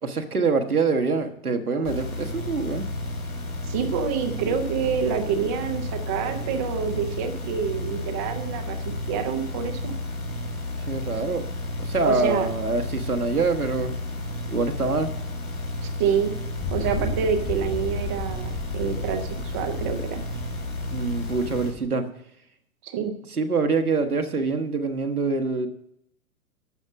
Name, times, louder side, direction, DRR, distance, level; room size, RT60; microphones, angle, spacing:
voice 1, 0.0-2.9 10.9-11.5 11.8-14.0 14.5-15.1 20.9-22.1 23.3-25.7, right 4 dB, 85° right, 6 dB, 1.3 m, -25 dB
sound 1, 1.8-21.7, left 1 dB, 80° left, 3.6 m, -32 dB
voice 2, 3.6-10.0 12.0-12.5 15.8-16.3 16.7-20.2 22.8-23.1, right 7 dB, 15° right, 5 dB, 0.4 m, -27 dB
sound 2, 16.6-21.9, left 3 dB, 20° left, 0.9 m, -35 dB
12.0 x 7.3 x 6.2 m, 0.76 s
figure-of-eight pair, 105°, 43 cm